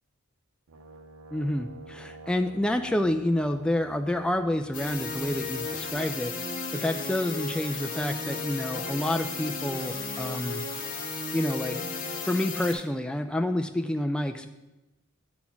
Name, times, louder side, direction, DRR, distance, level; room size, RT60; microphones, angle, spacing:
Brass instrument, 0.7-6.2, right 2 dB, 75° right, 0.6 m, -48 dB
voice 1, 1.3-10.6 11.3-11.8 12.2-14.5, left 1 dB, 5° left, 5 dB, 0.3 m, -28 dB
sound 1, 4.7-12.7, left 4 dB, 40° left, 1.3 m, -34 dB
9.7 x 4.2 x 5.8 m, 1.0 s
head